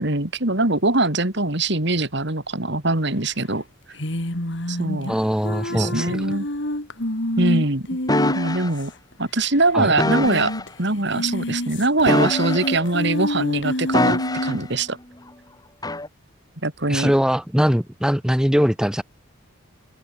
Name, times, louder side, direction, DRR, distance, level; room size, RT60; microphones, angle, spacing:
voice 1, 0.0-3.6 4.7-5.1 5.7-6.5 7.4-7.9 8.3-8.9 9.2-10.5 10.8-15.0 16.6-17.1, right 2 dB, 55° right, 3.2 m, -22 dB
sound 1, 3.9-8.9 9.1-9.2 9.4-9.5 10.1-10.7 11.0-14.6, left 1 dB, 60° left, 3.7 m, -27 dB
voice 2, 5.1-6.2 9.7-9.9 16.9-19.0, equal, 5° right, 1.2 m, -21 dB
sound 2, 8.1-8.7 10.0-10.6 12.0-12.9 13.9-14.7 15.8-16.1, left 1 dB, 20° left, 1.9 m, -23 dB
open air
head